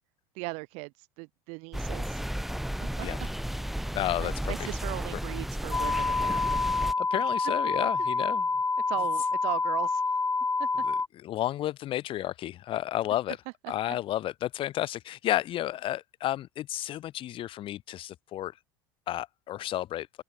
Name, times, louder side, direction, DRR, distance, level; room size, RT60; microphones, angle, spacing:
voice 1, 0.3-2.2 2.8-3.3 4.2-6.6 8.9-10.0 10.6-10.7 13.6-13.7, right 33 dB, 65° right, 1.0 m, -38 dB
sound 1, 1.7-6.9, equal, ahead, 1.0 m, -33 dB
voice 2, 3.9-4.7 7.0-8.5 10.8-13.4 13.7-18.5 19.1-20.1, left 13 dB, 50° left, 2.3 m, -32 dB
sound 2, 5.7-11.1, left 4 dB, 15° left, 1.6 m, -27 dB
open air
hypercardioid pair, 80°, 12 cm